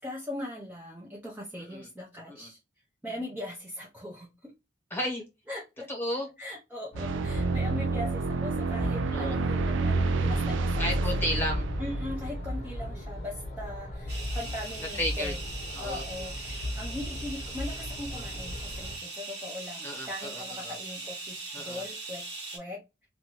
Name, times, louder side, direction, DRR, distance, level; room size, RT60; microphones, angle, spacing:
voice 1, 0.0-2.6 3.0-4.5 5.5-5.7 6.4-11.3 11.8-15.4 15.8-22.3 22.5-22.8, left 1 dB, 10° right, 0.4 m, -40 dB
voice 2, 4.9-5.2 5.9-6.3 9.1-9.4 10.8-11.7 15.0-15.3 15.7-16.0 19.8-20.7 21.5-21.8, left 1 dB, 10° left, 1.1 m, -32 dB
sound 1, 6.9-19.0, left 1 dB, 40° left, 0.7 m, -38 dB
sound 2, 6.9-13.6, right 3 dB, 80° right, 0.3 m, -29 dB
sound 3, 14.1-22.6, right 3 dB, 60° right, 1.2 m, -40 dB
2.6 x 2.3 x 2.8 m
head